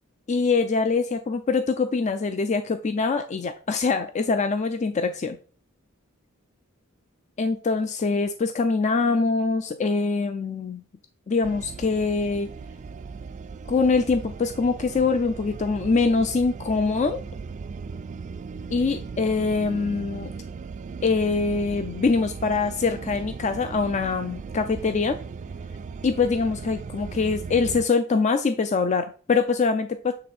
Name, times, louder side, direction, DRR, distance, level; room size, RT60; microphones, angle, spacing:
voice 1, 0.3-5.4 7.4-10.8 11.3-12.5 13.7-17.2 18.7-20.3 21.0-25.2 26.0-30.1, left 4 dB, 35° left, 8 dB, 0.4 m, -24 dB
sound 1, 11.4-27.9, right 5 dB, 35° right, 0.3 m, -37 dB
8.1 x 3.3 x 4.3 m, 0.40 s
head